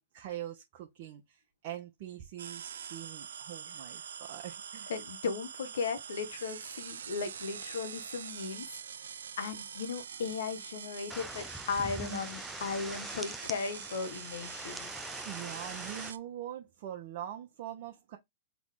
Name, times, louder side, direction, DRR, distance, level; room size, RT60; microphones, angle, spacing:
voice 1, 0.0-4.9 15.2-18.2, right 12 dB, 50° right, 0.8 m, -43 dB
sound 1, 2.4-16.2, right 8 dB, 75° right, 0.4 m, -44 dB
voice 2, 4.9-8.8 9.4-14.9, left 5 dB, 70° left, 1.2 m, -36 dB
sound 2, 11.1-16.1, right 1 dB, ahead, 0.4 m, -43 dB
4.0 x 3.0 x 3.6 m
hypercardioid pair, 115°, 0 cm